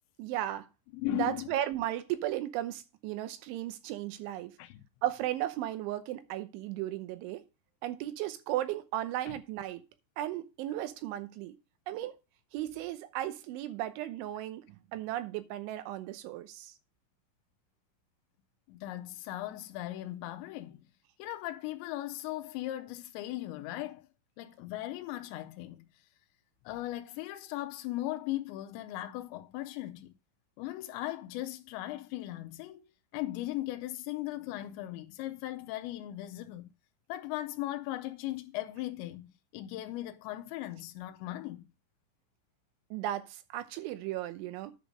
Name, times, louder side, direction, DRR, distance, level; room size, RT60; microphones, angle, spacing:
voice 1, 0.2-0.7 1.1-4.5 5.0-7.4 7.8-9.8 10.2-11.5 11.9-12.2 12.5-16.7 42.9-44.7, right 13 dB, 80° right, 3.0 m, -35 dB
voice 2, 0.9-1.5 4.6-4.8 9.3-9.4 18.7-20.8 21.2-24.1 24.4-25.9 26.7-30.1 30.6-32.8 33.1-36.7 37.1-41.7, left 15 dB, 90° left, 2.6 m, -38 dB
10.0 x 5.2 x 5.1 m
omnidirectional pair, 5.9 m